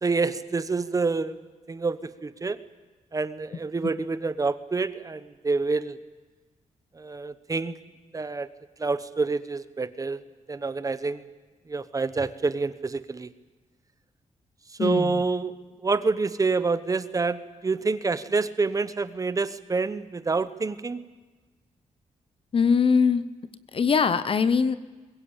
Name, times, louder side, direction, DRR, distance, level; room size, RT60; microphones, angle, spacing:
voice 1, 0.0-1.4 1.7-2.6 3.1-6.0 7.0-7.8 8.1-8.5 8.8-10.2 10.5-11.2 11.7-13.3 14.8-15.5 15.8-21.0, right 4 dB, 25° right, 13 dB, 1.0 m, -27 dB
voice 2, 14.8-15.2 22.5-23.3 23.7-24.8, left 5 dB, 45° left, 15 dB, 0.9 m, -22 dB
22.0 x 22.0 x 8.9 m, 1.3 s
wide cardioid pair, 145°, 13 cm